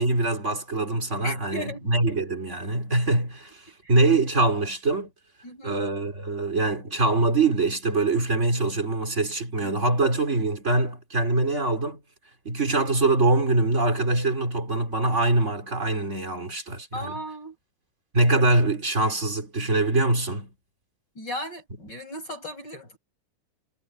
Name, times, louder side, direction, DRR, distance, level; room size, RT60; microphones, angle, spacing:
voice 1, 0.0-3.6 3.9-5.1 5.6-12.0 12.4-17.2 18.1-20.5, right 2 dB, 20° right, 2.9 m, -23 dB
voice 2, 1.2-1.8 3.8-3.9 5.4-5.8 16.9-17.6 21.2-23.0, equal, 30° left, 7.2 m, -36 dB
omnidirectional pair, 4.0 m